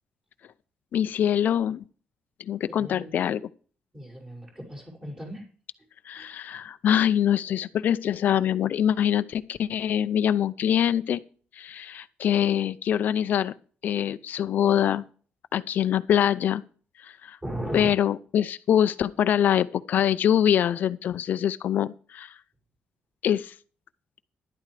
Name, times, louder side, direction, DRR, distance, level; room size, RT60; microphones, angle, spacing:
voice 1, 0.9-1.8 2.5-3.4 6.1-11.2 11.5-13.5 13.8-15.0 15.5-16.6 17.0-17.4 17.7-22.4 23.2-23.5, left 10 dB, 65° left, 13 dB, 0.5 m, -24 dB
voice 2, 2.7-3.1 3.9-5.4 6.2-6.3 17.4-17.9, right 1 dB, 20° right, -1 dB, 6.3 m, -36 dB
12.5 x 12.0 x 3.3 m, 0.41 s
cardioid pair, 120°, 3 cm